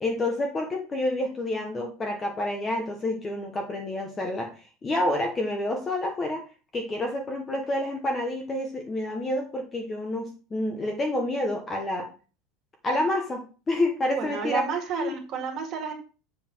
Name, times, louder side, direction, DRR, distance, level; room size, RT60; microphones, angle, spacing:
voice 1, 0.0-6.4 6.7-12.1 12.8-14.6 15.0-15.1, left 1 dB, 15° left, 3 dB, 0.8 m, -28 dB
voice 2, 14.1-15.9, right 6 dB, 30° right, 1 dB, 2.0 m, -31 dB
7.5 x 3.8 x 6.1 m, 0.36 s
supercardioid pair, 180°, 0 cm